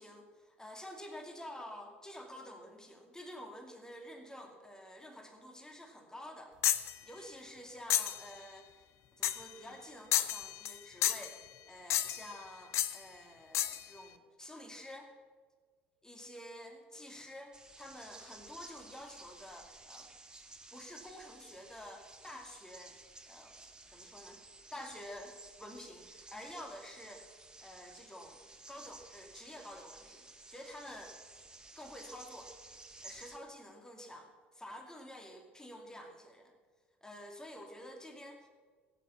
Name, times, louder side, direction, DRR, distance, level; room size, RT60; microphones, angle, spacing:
voice 1, 0.0-6.5 7.0-8.7 9.2-11.4 11.7-15.1 16.0-20.1 20.7-23.0 23.3-23.5 23.9-24.4 24.7-27.3 27.6-28.4 28.7-31.2 31.8-32.5 33.0-36.5 37.0-38.5, left 1 dB, 10° left, 3 dB, 2.5 m, -49 dB
sound 1, 6.6-6.9 7.9-8.2 9.2-9.5 10.1-10.8 11.0-11.3 11.9-12.3 12.7-13.0 13.5-13.8, left 12 dB, 55° left, 0.7 m, -31 dB
sound 2, 17.5-33.4, right 2 dB, 15° right, 1.5 m, -55 dB
16.5 x 8.5 x 7.1 m, 1.6 s
figure-of-eight pair, 60°, 6 cm